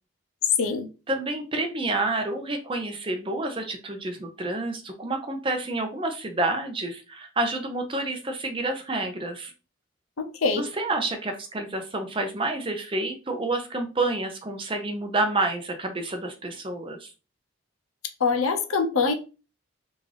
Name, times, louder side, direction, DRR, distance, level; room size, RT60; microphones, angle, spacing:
voice 1, 1.1-9.5 10.5-17.1, right 2 dB, 25° right, 0.5 m, -29 dB
voice 2, 10.2-10.7 18.2-19.1, left 4 dB, 90° left, 0.7 m, -24 dB
3.6 x 2.5 x 3.2 m
head